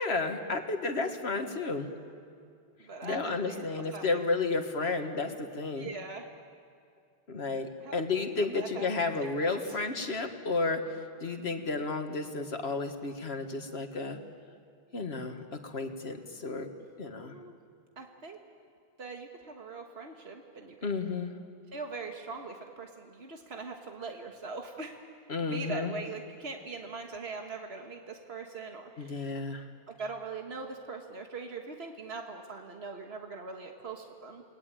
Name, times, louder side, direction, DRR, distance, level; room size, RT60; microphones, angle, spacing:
voice 1, 0.0-1.9 3.0-5.9 7.3-10.8 11.2-14.2 14.9-16.7 17.0-17.4 20.8-21.3 25.3-25.9 29.0-29.6, left 3 dB, 85° left, 5 dB, 2.0 m, -32 dB
voice 2, 2.8-4.2 4.8-5.0 5.8-6.2 7.8-8.0 8.5-8.9 9.4-9.8 17.2-17.5 18.0-18.4 19.0-20.9 21.7-25.0 25.4-29.2 30.0-34.4, right 4 dB, 85° right, 3 dB, 1.8 m, -41 dB
29.5 x 20.0 x 8.9 m, 2.3 s
omnidirectional pair, 1.0 m